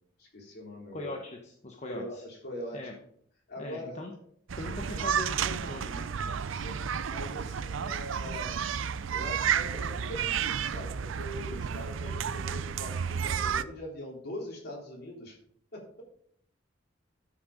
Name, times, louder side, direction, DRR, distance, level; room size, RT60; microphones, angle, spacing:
voice 1, 0.2-1.2 1.8-3.0 3.5-4.0 4.7-5.0 6.4-8.6 9.1-15.4 15.7-16.0, equal, 55° left, -1 dB, 3.8 m, -42 dB
voice 2, 0.9-2.2 2.7-2.9 3.6-4.1 4.6-6.1, left 2 dB, 35° left, 2 dB, 1.1 m, -40 dB
sound 1, 4.5-13.6, right 7 dB, 75° right, 0.5 m, -32 dB
12.5 x 6.4 x 5.1 m, 0.65 s
head